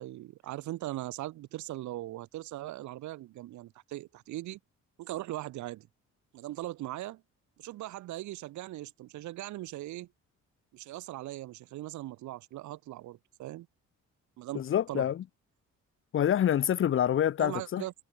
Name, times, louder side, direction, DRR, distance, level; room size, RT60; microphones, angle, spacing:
voice 1, 0.0-4.6 5.0-5.9 6.3-7.2 7.6-10.1 10.7-13.7 14.4-14.6 14.9-15.1 17.4-18.0, right 16 dB, 75° right, 0.6 m, -39 dB
voice 2, 14.5-15.2 16.1-17.8, left 10 dB, 45° left, 0.6 m, -27 dB
cardioid pair, 90°, 30 cm